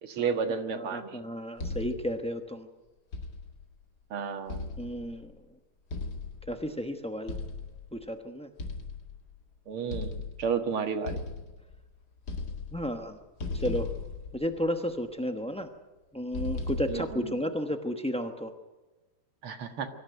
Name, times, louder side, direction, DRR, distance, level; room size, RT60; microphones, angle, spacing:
voice 1, 0.0-1.2 4.1-4.7 9.7-10.1 10.4-11.2 16.9-17.4 19.4-19.9, right 6 dB, 85° right, 6 dB, 2.5 m, -32 dB
voice 2, 0.7-2.7 4.8-5.3 6.5-7.4 7.9-8.5 12.7-13.2 13.5-13.9 14.3-15.7 16.1-18.5, equal, 10° left, 6 dB, 0.3 m, -33 dB
sound 1, 1.6-2.2 3.1-3.7 4.5-5.3 5.9-6.7 7.3-7.9 8.6-9.4 9.9-10.6 11.1-11.9 12.2-13.0 13.4-14.9 16.3-17.3, left 3 dB, 50° left, 2.6 m, -37 dB
23.5 x 14.5 x 9.3 m, 1.2 s
omnidirectional pair, 2.3 m